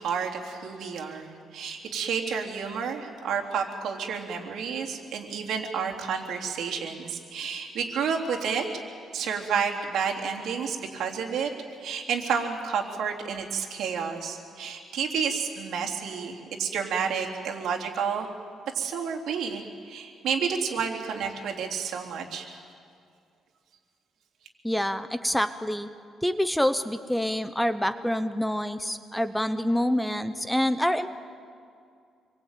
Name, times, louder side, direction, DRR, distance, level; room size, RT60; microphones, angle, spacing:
voice 1, 0.0-8.6 9.1-11.5 11.8-18.3 18.7-22.5, right 6 dB, 70° right, 1 dB, 3.6 m, -30 dB
voice 2, 24.6-25.9 26.2-31.1, equal, 5° left, 11 dB, 0.8 m, -26 dB
27.0 x 22.5 x 9.2 m, 2.3 s
cardioid pair, 140°, 0 cm